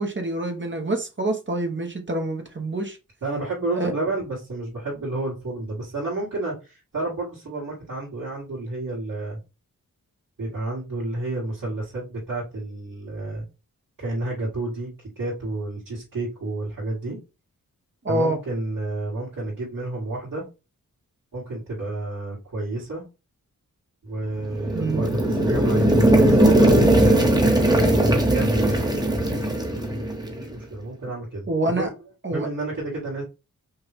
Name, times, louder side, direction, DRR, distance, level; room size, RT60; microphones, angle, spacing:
voice 1, 0.0-3.0 3.7-3.9 18.0-18.4 24.7-25.0 31.5-31.9 32.2-32.5, right 2 dB, 35° right, 3 dB, 1.0 m, -26 dB
voice 2, 3.2-9.4 10.4-13.4 14.0-17.2 18.1-20.4 21.3-23.0 24.0-27.4 28.2-28.9 30.2-31.9 32.3-33.2, right 2 dB, 65° right, -8 dB, 2.3 m, -30 dB
sound 1, 24.4-30.5, right 1 dB, 10° right, 1.1 m, -19 dB
5.6 x 2.4 x 3.5 m, 0.28 s
wide cardioid pair, 75°, 34 cm